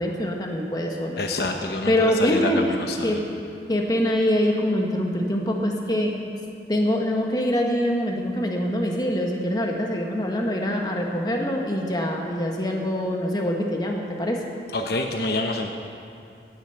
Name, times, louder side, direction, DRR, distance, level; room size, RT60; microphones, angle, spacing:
voice 1, 0.0-1.2 1.9-3.2 3.7-6.1 6.7-14.4, equal, 20° left, 1 dB, 1.4 m, -24 dB
voice 2, 1.2-3.2 14.7-15.7, left 2 dB, 65° left, 4 dB, 0.9 m, -27 dB
17.0 x 10.0 x 5.8 m, 2.5 s
head